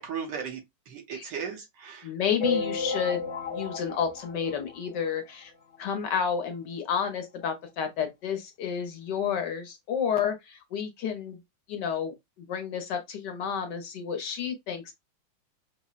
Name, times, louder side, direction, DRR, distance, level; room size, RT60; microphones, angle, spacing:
voice 1, 0.0-2.1, right 6 dB, 70° right, 1.5 m, -36 dB
voice 2, 2.0-3.2 3.5-5.5 5.8-11.4 11.7-12.1 12.5-14.9, left 7 dB, 70° left, 1.3 m, -30 dB
sound 1, 2.4-5.3 5.7-5.8 6.0-6.2 6.5-6.6 7.4-7.5 8.0-8.1, left 3 dB, 50° left, 0.8 m, -33 dB
5.5 x 2.0 x 2.3 m
omnidirectional pair, 2.1 m